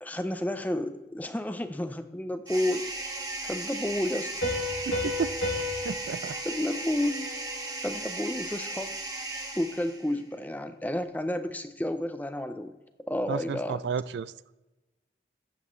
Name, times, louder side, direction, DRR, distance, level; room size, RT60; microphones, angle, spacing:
voice 1, 0.0-3.0 3.4-4.5 6.4-7.3 7.8-8.9 9.5-12.7 13.1-13.8, left 1 dB, 10° left, 0.6 m, -31 dB
sound 1, 2.5-10.2, right 2 dB, 20° right, 1.6 m, -36 dB
Piano, 4.4-7.8, left 2 dB, 85° left, 3.1 m, -34 dB
voice 2, 4.9-5.3 5.8-6.4 13.3-14.3, right 6 dB, 75° right, 0.4 m, -32 dB
12.0 x 8.3 x 3.2 m
head